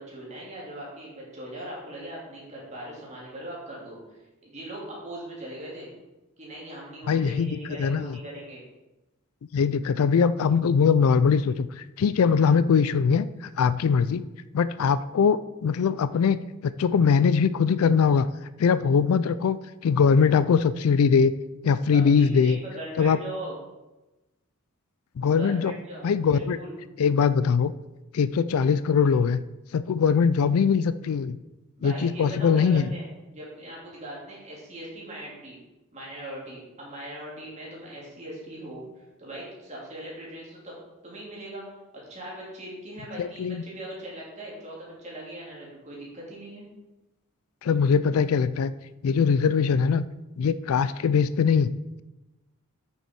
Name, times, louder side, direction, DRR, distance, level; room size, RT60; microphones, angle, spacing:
voice 1, 0.0-5.9 6.4-8.6 21.9-23.6 25.3-26.8 31.8-35.6 35.9-40.8 41.0-41.6 41.9-46.6, right 1 dB, 30° right, -5 dB, 3.1 m, -40 dB
voice 2, 7.1-8.1 9.5-13.3 13.6-14.2 14.5-18.3 18.6-21.3 21.6-22.6 23.0-23.2 25.2-25.7 26.0-26.6 27.0-27.7 28.1-29.4 29.7-31.4 31.8-32.8 43.2-43.6 47.6-48.7 49.0-50.1 50.4-51.7, left 6 dB, 85° left, 14 dB, 0.4 m, -22 dB
9.0 x 6.9 x 4.7 m, 1.0 s
head